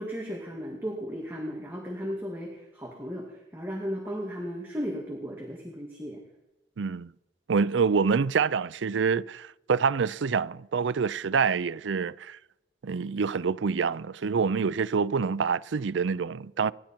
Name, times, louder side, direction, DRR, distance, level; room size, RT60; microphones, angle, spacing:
voice 1, 0.0-6.2, equal, 10° right, 2.3 m, -35 dB
voice 2, 6.8-7.1 7.5-12.4 12.8-16.7, right 5 dB, 85° right, 0.5 m, -26 dB
27.0 x 12.0 x 4.5 m
head